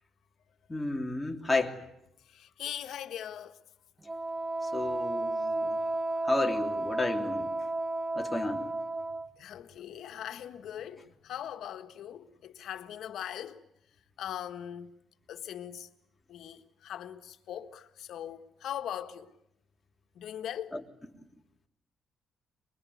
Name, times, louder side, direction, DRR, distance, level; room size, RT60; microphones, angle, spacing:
voice 1, 0.7-1.8 4.6-5.8 6.2-7.5 8.1-8.7 20.7-20.8, left 2 dB, 10° left, 3.2 m, -32 dB
voice 2, 2.3-3.6 9.4-13.6 14.2-14.9 15.3-15.9 16.3-19.3 20.1-20.8, left 10 dB, 75° left, 1.6 m, -40 dB
Wind instrument woodwind instrument, 4.1-9.3, right 2 dB, 20° right, 1.0 m, -33 dB
24.0 x 22.0 x 9.5 m
cardioid pair, 90°, 0 cm